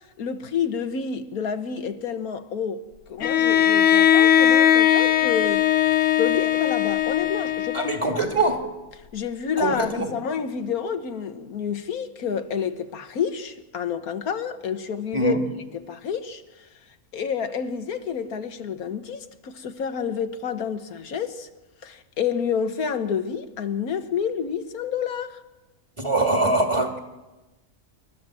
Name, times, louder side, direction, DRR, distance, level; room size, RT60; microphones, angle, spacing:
voice 1, 0.2-2.8 3.1-5.7 6.2-8.2 9.1-15.4 15.8-16.4 17.1-21.5 21.8-25.4, left 7 dB, 80° left, 1.6 m, -29 dB
Bowed string instrument, 3.2-8.2, left 10 dB, 60° left, 1.1 m, -19 dB
voice 2, 7.7-8.6 9.6-10.1 15.1-15.4 26.0-27.0, right 2 dB, 20° right, 2.2 m, -23 dB
27.5 x 12.5 x 7.5 m
omnidirectional pair, 1.5 m